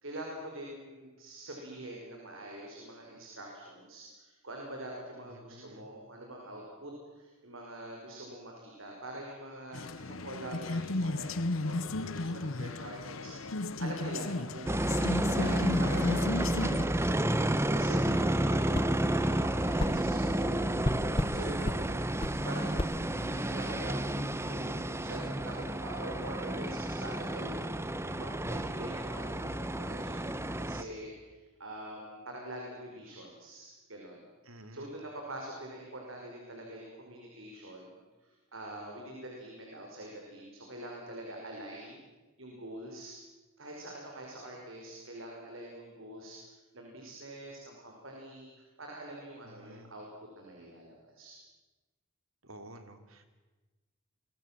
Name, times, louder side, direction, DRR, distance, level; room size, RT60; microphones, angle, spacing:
voice 1, 0.0-20.8 21.0-22.0 22.4-24.2 24.5-29.3 29.6-30.2 30.6-38.0 38.2-42.0 42.4-43.2 43.6-46.4 46.7-50.1 50.4-51.4, right 1 dB, 70° right, 0 dB, 5.6 m, -45 dB
voice 2, 5.2-5.9 34.4-34.9 49.4-49.9 52.4-53.2, right 1 dB, 85° right, 8 dB, 3.4 m, -51 dB
sound 1, 9.7-16.9, left 2 dB, 70° left, 1.0 m, -35 dB
sound 2, 14.7-30.8, right 1 dB, 15° right, 1.1 m, -31 dB
sound 3, 18.7-18.9 19.8-20.0 20.8-21.4 21.7-21.8 22.2-22.4 22.8-22.9, left 1 dB, 25° left, 1.0 m, -32 dB
29.5 x 24.0 x 7.6 m, 1.2 s
head